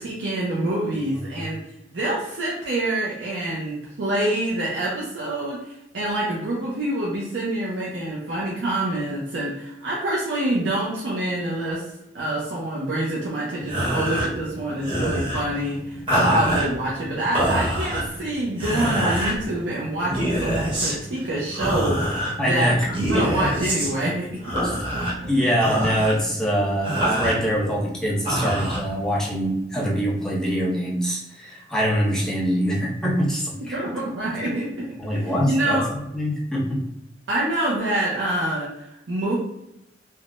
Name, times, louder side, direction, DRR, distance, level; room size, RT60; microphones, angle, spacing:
voice 1, 0.0-1.6 1.9-24.3 24.9-25.2 33.5-34.8 35.1-35.9 37.3-39.4, right 1 dB, 85° right, -5 dB, 0.6 m, -26 dB
sound 1, 13.6-29.5, equal, 30° right, 1.0 m, -27 dB
voice 2, 16.1-16.4 22.4-22.9 23.1-23.3 24.6-24.7 25.3-33.8 35.0-35.8 36.1-36.8, equal, 5° left, -4 dB, 0.6 m, -24 dB
3.5 x 2.1 x 2.4 m, 0.85 s
head